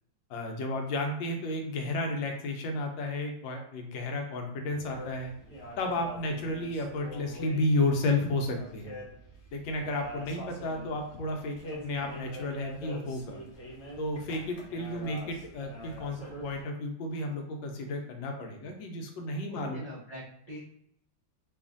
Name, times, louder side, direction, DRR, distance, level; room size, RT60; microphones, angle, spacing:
voice 1, 0.3-5.3 5.8-8.9 9.5-11.6 11.8-13.4 14.0-19.8, left 2 dB, 85° left, 3 dB, 1.3 m, -32 dB
sound 1, 4.7-16.6, equal, 55° left, 1.0 m, -44 dB
voice 2, 19.5-20.6, left 1 dB, 70° right, -9 dB, 0.3 m, -43 dB
3.1 x 2.4 x 2.5 m, 0.71 s
omnidirectional pair, 2.0 m